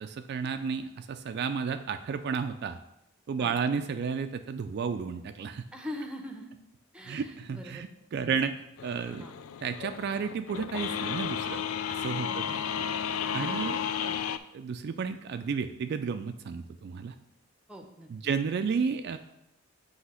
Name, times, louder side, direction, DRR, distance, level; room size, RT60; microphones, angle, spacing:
voice 1, 0.0-2.8 3.3-5.6 7.0-8.5 8.8-9.3 9.6-11.6 12.0-12.5 13.3-14.2 14.5-17.2 18.1-19.2, right 6 dB, 55° right, 8 dB, 0.3 m, -32 dB
voice 2, 5.7-6.5 6.9-7.9 9.2-9.4 12.2-12.6 13.4-13.9 17.7-18.1, left 1 dB, 5° right, 4 dB, 0.7 m, -43 dB
sound 1, 8.8-14.4, left 8 dB, 90° left, 0.4 m, -33 dB
8.1 x 2.8 x 5.6 m, 0.84 s
head